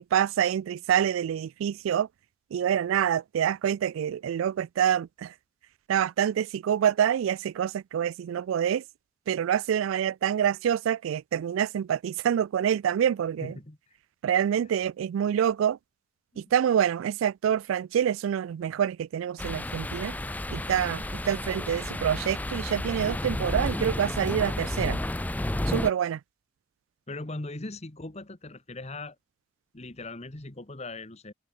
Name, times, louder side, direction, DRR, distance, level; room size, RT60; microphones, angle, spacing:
voice 1, 0.0-2.1 2.5-5.3 5.9-8.8 9.3-13.5 14.2-15.8 16.5-20.1 20.5-25.0 25.7-26.2, right 9 dB, 85° right, 0.3 m, -26 dB
voice 2, 13.4-13.8 16.3-16.4 27.1-29.2 29.7-31.3, left 2 dB, 35° left, 1.5 m, -39 dB
sound 1, 19.4-25.9, left 1 dB, 10° left, 0.4 m, -31 dB
head